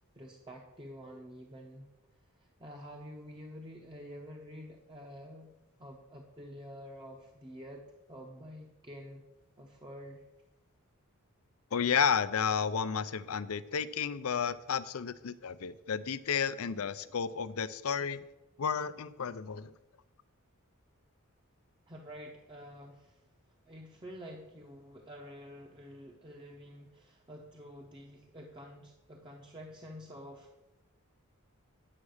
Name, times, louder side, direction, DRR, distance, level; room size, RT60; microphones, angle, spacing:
voice 1, 0.1-1.9 2.4-5.5 5.8-9.2 9.6-10.3 21.9-30.5, equal, 20° right, 1 dB, 0.9 m, -48 dB
voice 2, 11.7-18.2 18.6-19.7, left 7 dB, 70° left, 15 dB, 0.5 m, -32 dB
9.7 x 7.3 x 6.5 m, 1.0 s
head